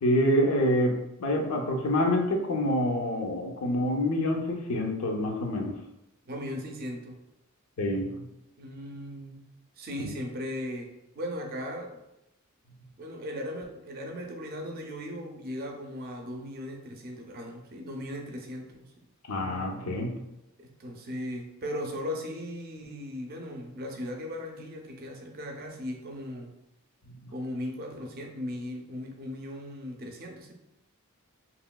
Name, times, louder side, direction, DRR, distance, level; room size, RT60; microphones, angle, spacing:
voice 1, 0.0-5.8 7.8-8.3 10.0-10.1 19.3-20.2, left 1 dB, 85° left, 2 dB, 0.5 m, -27 dB
voice 2, 6.3-7.2 8.6-9.5 9.8-12.0 13.0-18.9 20.6-26.5 27.3-30.5, left 1 dB, 45° right, 2 dB, 0.4 m, -37 dB
3.0 x 2.8 x 2.2 m, 0.89 s
head